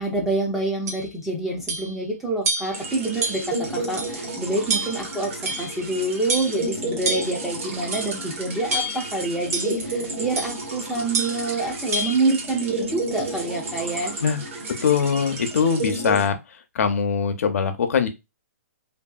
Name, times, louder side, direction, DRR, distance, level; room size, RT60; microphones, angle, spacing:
voice 1, 0.0-14.2, right 2 dB, 5° right, -2 dB, 0.4 m, -27 dB
sound 1, 0.9-1.0 1.7-1.9 2.5-2.8 3.2-3.6 4.0-4.1 4.7-5.1 5.5-5.8 6.3-6.6 7.0-7.4 7.9-8.2 8.7-9.1 9.5-9.8 10.4-10.6 11.1-11.4 11.9-12.1, right 2 dB, 75° right, 0.8 m, -27 dB
sound 2, 2.7-16.3, right 2 dB, 55° right, 1.1 m, -32 dB
voice 2, 14.8-16.4 16.7-18.1, left 6 dB, 65° left, 8 dB, 0.5 m, -22 dB
2.7 x 2.6 x 2.2 m, 0.23 s
hypercardioid pair, 170°, 9 cm